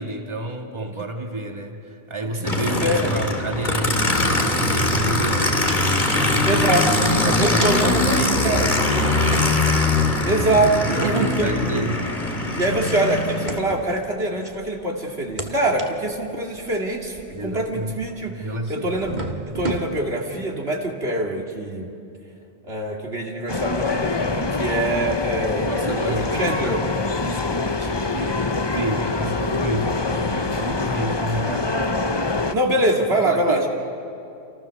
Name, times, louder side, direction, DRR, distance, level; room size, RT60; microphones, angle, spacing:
voice 1, 0.0-5.7 6.1-6.7 7.0-10.6 10.9-12.2 17.3-18.0 18.3-18.9 25.7-26.8 27.2-31.9 33.2-33.7, right 1 dB, 30° right, 2 dB, 2.1 m, -30 dB
Aircraft, 2.4-13.6, left 2 dB, 50° left, 2.5 m, -21 dB
voice 2, 2.5-3.1 6.4-6.9 7.4-8.1 8.4-8.6 10.3-11.5 12.6-19.2 19.5-21.9 22.6-26.8 32.5-33.7, right 1 dB, 90° right, 0 dB, 3.0 m, -24 dB
sound 1, 5.4-6.1 6.4-6.5 7.1-8.7 9.3-14.8 15.2-18.3 18.8-19.8, right 2 dB, 45° right, 1.9 m, -34 dB
sound 2, 23.5-32.6, left 3 dB, 25° left, 0.8 m, -25 dB
29.0 x 28.5 x 6.6 m, 2.6 s
omnidirectional pair, 1.0 m